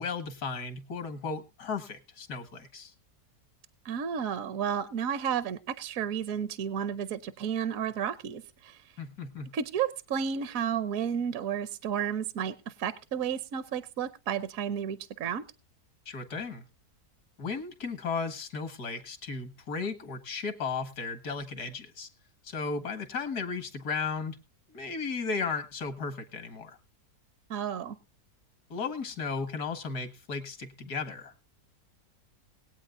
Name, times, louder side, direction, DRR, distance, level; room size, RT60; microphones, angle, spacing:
voice 1, 0.0-2.9 9.0-9.5 16.1-16.6 17.4-22.1 22.4-24.4 24.7-26.8 28.7-31.4, left 4 dB, 75° left, 8 dB, 2.2 m, -35 dB
voice 2, 3.8-8.8 9.5-15.5 27.5-27.9, right 8 dB, 65° right, 14 dB, 1.0 m, -32 dB
21.0 x 8.7 x 2.5 m, 0.30 s
omnidirectional pair, 1.7 m